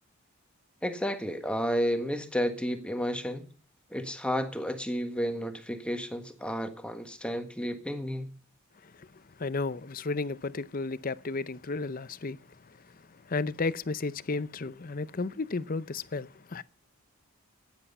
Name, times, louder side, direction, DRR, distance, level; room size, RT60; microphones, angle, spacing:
voice 1, 0.8-3.4 3.9-8.3, equal, 5° left, 1.5 m, -31 dB
voice 2, 9.4-12.4 13.3-16.6, left 3 dB, 40° left, 0.6 m, -33 dB
16.0 x 10.5 x 5.5 m
head